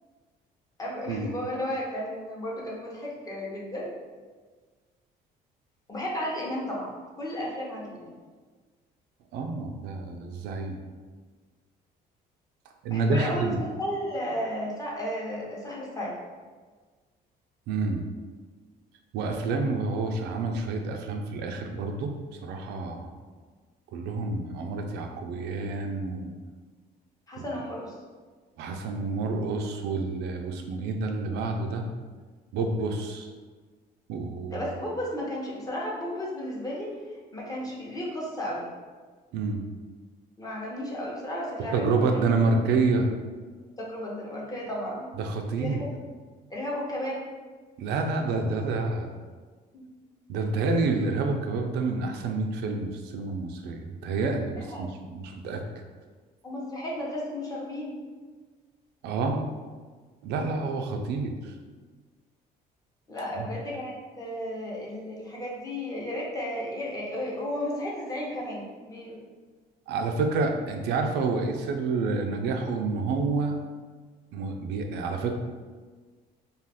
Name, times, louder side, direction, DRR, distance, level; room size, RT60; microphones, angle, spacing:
voice 1, 0.8-3.9 5.9-6.9 7.2-8.2 12.9-16.2 27.3-27.9 34.5-36.9 37.3-38.7 40.4-42.1 43.8-45.1 45.6-45.9 46.5-47.2 49.7-49.8 54.6-54.9 56.4-58.0 63.1-69.2, equal, 20° left, -4 dB, 0.7 m, -33 dB
voice 2, 9.3-10.8 12.8-13.6 17.7-18.0 19.1-22.1 22.4-23.2 23.9-26.3 27.4-27.5 28.6-31.8 32.5-33.3 34.1-34.7 39.3-39.6 41.7-43.1 45.2-45.8 47.8-49.2 50.3-55.6 59.0-59.4 60.2-61.5 63.3-63.5 69.9-73.6 74.3-75.3, right 3 dB, 80° right, 4 dB, 0.4 m, -28 dB
2.4 x 2.3 x 3.4 m, 1.4 s
cardioid pair, 110°, 17 cm